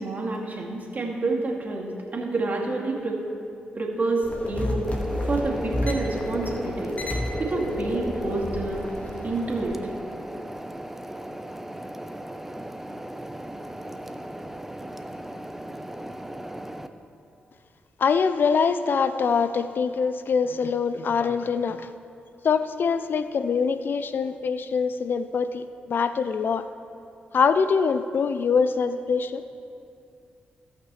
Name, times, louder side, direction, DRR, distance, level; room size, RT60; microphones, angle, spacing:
voice 1, 0.0-3.2 3.8-4.8 5.2-7.0 7.4-8.8 9.2-9.7, right 3 dB, 45° right, -3 dB, 2.3 m, -28 dB
sound 1, 4.2-9.7, left 1 dB, 40° left, 1.7 m, -30 dB
sound 2, 4.9-16.9, right 1 dB, 5° right, 0.6 m, -38 dB
voice 2, 18.0-21.9 22.4-26.7 27.3-29.4, left 5 dB, 60° left, 11 dB, 0.4 m, -24 dB
17.5 x 5.9 x 3.1 m, 2.6 s
supercardioid pair, 50°, 4 cm